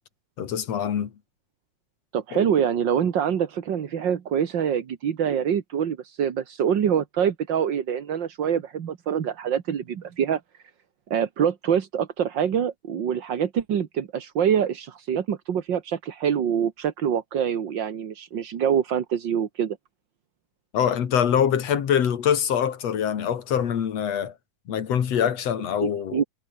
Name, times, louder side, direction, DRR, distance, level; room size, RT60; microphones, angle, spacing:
voice 1, 0.4-1.1 2.3-2.4 20.7-24.3 24.7-26.2, left 8 dB, 60° left, 3.1 m, -24 dB
voice 2, 2.1-10.4 11.1-19.8 25.8-26.2, right 8 dB, 45° right, 1.7 m, -25 dB
omnidirectional pair, 3.4 m